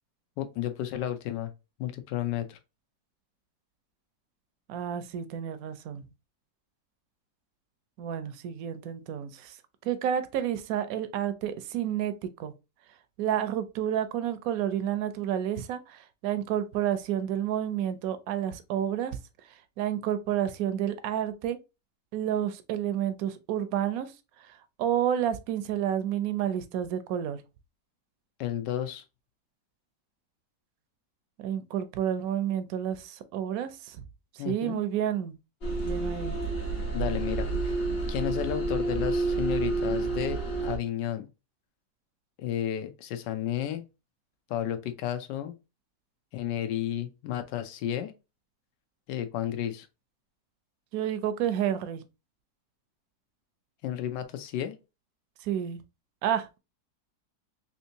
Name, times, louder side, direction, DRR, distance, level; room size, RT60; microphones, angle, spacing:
voice 1, 0.4-1.5 1.8-2.6 28.4-29.0 34.4-34.8 36.9-37.5 38.1-41.3 42.4-43.8 44.5-45.5 46.3-48.1 49.1-49.9 53.8-54.7, left 11 dB, 90° left, 1.3 m, -32 dB
voice 2, 4.7-6.0 8.0-9.6 9.8-12.1 12.4-12.5 13.2-19.2 19.8-21.6 22.1-24.1 24.8-27.4 31.4-34.0 34.4-35.3 35.8-36.4 50.9-52.0 55.4-55.8 56.2-56.6, right 10 dB, 70° right, 0.9 m, -30 dB
sound 1, 35.6-40.8, right 3 dB, 40° left, 1.1 m, -29 dB
3.5 x 2.9 x 2.7 m
omnidirectional pair, 1.8 m